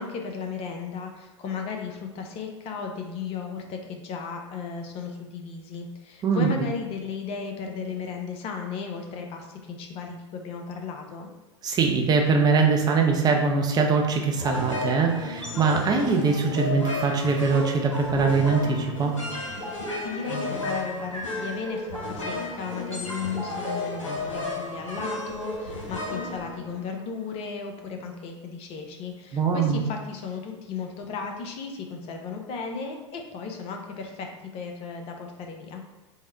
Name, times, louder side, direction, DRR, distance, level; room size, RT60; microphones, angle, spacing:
voice 1, 0.0-11.3 19.7-35.8, left 5 dB, 40° left, 3 dB, 0.6 m, -35 dB
voice 2, 11.6-19.1 29.3-29.8, right 4 dB, 25° right, 2 dB, 0.6 m, -22 dB
sound 1, 14.4-27.1, left 2 dB, 85° left, 0.9 m, -33 dB
3.7 x 2.1 x 4.3 m, 1.1 s
figure-of-eight pair, 85°, 16 cm